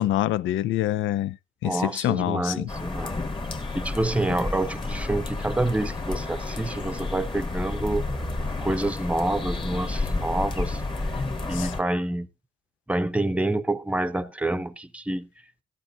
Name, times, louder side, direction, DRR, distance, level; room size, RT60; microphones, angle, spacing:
voice 1, 0.0-1.4 1.6-2.7 11.5-11.7, left 13 dB, 80° left, 0.5 m, -25 dB
voice 2, 1.6-3.2 3.7-8.1 8.6-10.8 11.5-12.3 12.9-15.3, right 2 dB, 5° right, 0.7 m, -27 dB
sound 1, 2.7-11.8, left 2 dB, 25° left, 1.4 m, -30 dB
14.5 x 11.5 x 2.6 m
cardioid pair, 90°, 20 cm